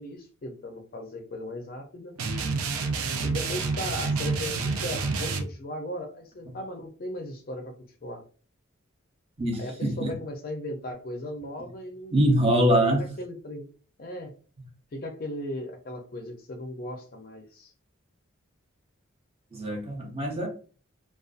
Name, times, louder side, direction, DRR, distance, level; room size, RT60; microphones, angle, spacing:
voice 1, 0.0-2.2 3.2-7.7 8.0-8.3 9.6-12.2 13.0-13.7 14.0-14.3 14.9-17.7, left 1 dB, 45° left, 4 dB, 0.4 m, -37 dB
sound 1, 2.2-5.4, right 4 dB, 85° right, 0.4 m, -28 dB
voice 2, 9.4-10.1 12.1-13.1 19.5-20.5, right 1 dB, 25° right, 1 dB, 0.6 m, -24 dB
2.5 x 2.2 x 2.4 m, 0.39 s
head